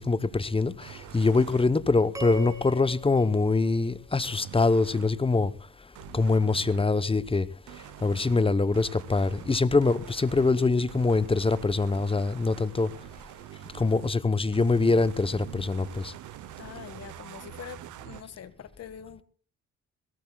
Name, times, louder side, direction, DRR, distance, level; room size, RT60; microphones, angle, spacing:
voice 1, 0.0-5.5 6.1-7.5 8.0-12.9 13.7-16.1, left 3 dB, 20° left, 0.9 m, -24 dB
sound 1, 0.8-1.7 4.2-5.1 6.0-6.8 7.7-14.1 14.5-18.2, right 13 dB, 80° right, 1.0 m, -45 dB
sound 2, 2.1-4.5, right 4 dB, 10° right, 3.5 m, -41 dB
voice 2, 16.6-19.2, left 8 dB, 55° left, 1.7 m, -44 dB
22.0 x 17.0 x 2.3 m
cardioid pair, 90°, 30 cm